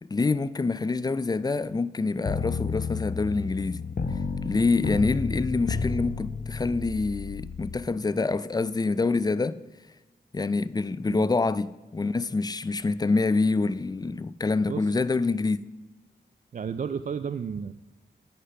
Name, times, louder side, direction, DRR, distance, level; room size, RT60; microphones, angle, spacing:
voice 1, 0.0-3.8 4.4-9.6 10.3-15.6, left 3 dB, 20° left, 0.4 m, -26 dB
sound 1, 2.3-7.8, left 4 dB, 50° left, 0.8 m, -31 dB
voice 2, 14.6-14.9 16.5-17.8, right 6 dB, 45° right, 0.4 m, -33 dB
9.2 x 6.7 x 5.7 m
cardioid pair, 50°, 18 cm